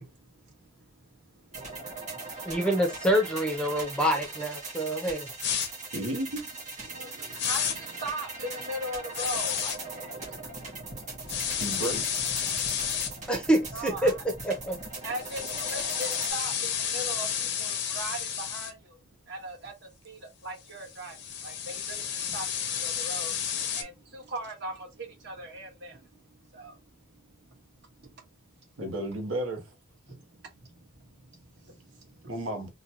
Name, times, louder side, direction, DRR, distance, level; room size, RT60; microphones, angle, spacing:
voice 1, 0.0-2.6 4.9-5.0 5.8-5.9 6.8-11.8 12.4-13.3 13.7-14.2 15.0-19.0 19.2-28.3 30.1-32.4, right 1 dB, 55° right, 1.4 m, -41 dB
sound 1, 1.5-16.3, right 3 dB, 35° right, 1.9 m, -40 dB
voice 2, 2.5-5.3 13.3-14.1 14.4-14.8, equal, 5° left, 0.7 m, -26 dB
sound 2, 5.4-5.7 7.4-7.7 9.1-9.8 11.3-13.1 15.1-18.7 20.8-23.8, left 8 dB, 55° left, 0.7 m, -31 dB
voice 3, 5.9-6.6 11.6-12.0 28.8-29.6 32.3-32.7, right 1 dB, 70° right, 0.9 m, -32 dB
3.8 x 2.2 x 2.9 m
head